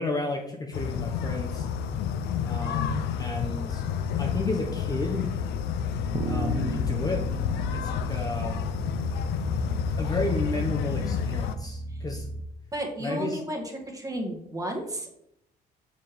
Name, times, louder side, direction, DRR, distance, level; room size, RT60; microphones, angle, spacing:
voice 1, 0.0-1.7 2.4-3.9 4.2-5.3 6.2-7.3 7.7-8.6 10.0-12.3 13.0-13.4, left 2 dB, 20° left, 2 dB, 0.8 m, -32 dB
sound 1, 0.7-11.5, left 7 dB, 80° left, 0.5 m, -30 dB
sound 2, 6.1-12.4, right 2 dB, 40° right, 0.7 m, -35 dB
voice 2, 12.7-15.1, right 1 dB, 20° right, 1 dB, 1.4 m, -33 dB
7.3 x 4.3 x 3.4 m, 0.77 s
cardioid pair, 110°, 17 cm